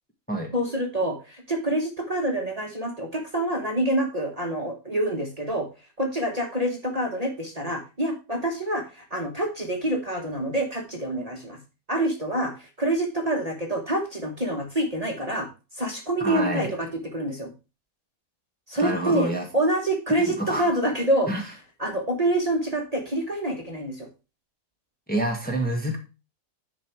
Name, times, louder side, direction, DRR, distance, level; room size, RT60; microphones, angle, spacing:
voice 1, 0.5-5.7 6.0-11.6 11.9-15.5 15.7-17.5 18.7-21.3 21.8-24.1, right 1 dB, 25° right, 2 dB, 1.4 m, -26 dB
voice 2, 16.2-16.7 18.8-19.4 20.4-20.8 21.3-21.4 25.1-26.0, right 1 dB, 5° left, 1 dB, 1.4 m, -27 dB
10.5 x 4.5 x 4.5 m, 0.30 s
omnidirectional pair, 1.5 m